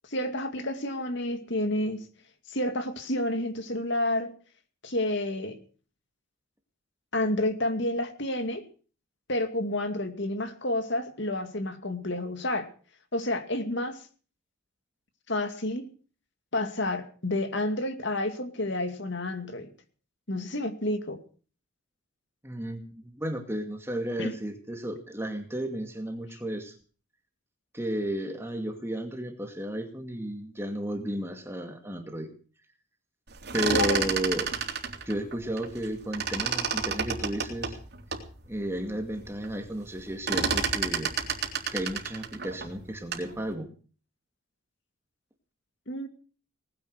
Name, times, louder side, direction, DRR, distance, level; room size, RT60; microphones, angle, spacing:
voice 1, 0.1-2.0 2.5-4.3 4.8-5.6 7.1-8.6 9.3-12.7 13.1-14.0 15.3-15.9 16.5-19.7 20.3-21.2 24.2-24.3 33.7-34.0 45.9-46.1, left 1 dB, 55° left, 8 dB, 2.4 m, -30 dB
voice 2, 22.4-26.7 27.7-32.3 33.5-34.5 35.1-37.8 38.5-41.1 41.7-43.7, equal, 10° right, 4 dB, 2.2 m, -33 dB
sound 1, 33.3-35.9 36.1-38.3 38.8-38.9 39.1-39.5 39.8-43.3, right 6 dB, 50° right, 3.5 m, -30 dB
19.5 x 10.5 x 6.6 m, 0.40 s
head